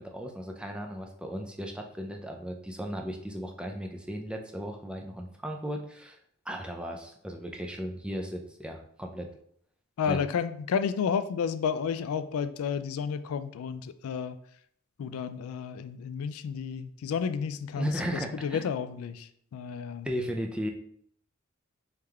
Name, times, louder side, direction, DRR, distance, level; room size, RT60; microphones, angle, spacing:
voice 1, 0.0-6.2 6.5-9.3 10.1-10.2 17.7-18.6 20.0-20.7, equal, 5° right, 2 dB, 0.4 m, -36 dB
voice 2, 10.0-14.4 15.0-17.9 18.3-20.1, left 6 dB, 85° left, 12 dB, 0.3 m, -31 dB
3.5 x 3.3 x 3.4 m, 0.65 s
head